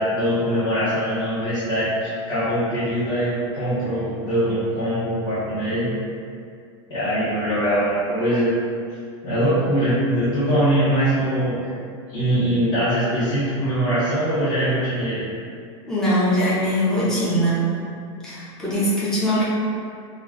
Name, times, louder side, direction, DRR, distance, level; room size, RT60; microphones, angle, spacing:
voice 1, 0.0-5.9 6.9-8.6 9.2-11.7 12.1-15.3, equal, 30° left, -14 dB, 0.8 m, -22 dB
voice 2, 15.9-17.8 18.2-19.4, equal, 5° left, -10 dB, 0.5 m, -21 dB
2.2 x 2.2 x 3.5 m, 2.4 s
supercardioid pair, 160°, 15 cm